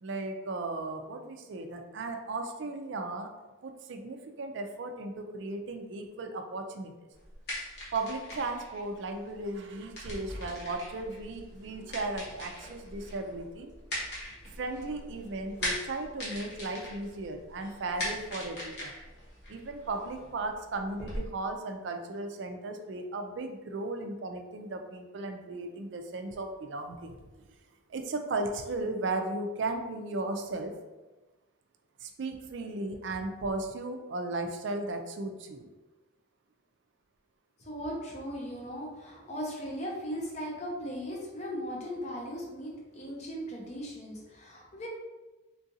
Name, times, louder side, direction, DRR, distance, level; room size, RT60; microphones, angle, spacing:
voice 1, 0.0-3.3 3.6-6.9 7.9-13.7 14.6-18.9 19.5-27.2 27.9-30.7 32.0-35.7, right 2 dB, 60° right, 5 dB, 0.4 m, -36 dB
sound 1, 7.1-21.2, left 1 dB, 55° left, 1.2 m, -41 dB
voice 2, 37.6-44.9, equal, 35° left, -2 dB, 0.7 m, -38 dB
3.7 x 2.4 x 2.7 m, 1.1 s
head